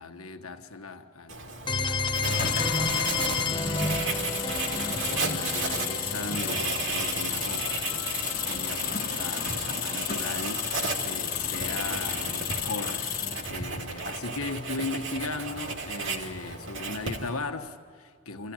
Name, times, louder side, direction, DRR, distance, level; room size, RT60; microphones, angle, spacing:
voice 1, 0.0-2.5 2.9-4.2 4.5-8.2 8.5-18.5, left 3 dB, 85° left, 1.4 m, -38 dB
Writing, 1.3-17.5, right 4 dB, 60° right, 2.7 m, -34 dB
sound 1, 1.7-11.4, left 3 dB, 20° left, 0.8 m, -33 dB
sound 2, 2.2-13.6, left 8 dB, 40° left, 1.4 m, -32 dB
26.5 x 16.0 x 9.0 m
head